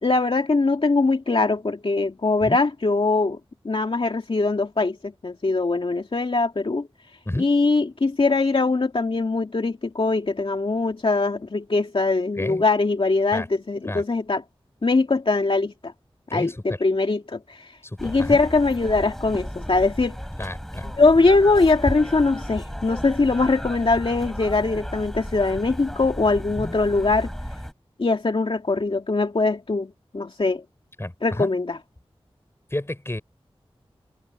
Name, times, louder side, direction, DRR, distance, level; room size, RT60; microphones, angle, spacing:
voice 1, 0.0-3.4 3.6-6.9 7.4-14.4 14.8-15.9 16.3-20.2 20.8-27.3 28.0-30.6 31.2-31.8, left 3 dB, 60° left, 2.4 m, -22 dB
voice 2, 16.3-16.6 17.8-18.4 20.4-20.9 26.6-26.8 31.0-31.5 32.7-33.2, left 1 dB, 25° left, 6.0 m, -31 dB
sound 1, 18.0-27.7, equal, 5° left, 5.1 m, -34 dB
wide cardioid pair, 70°, 10 cm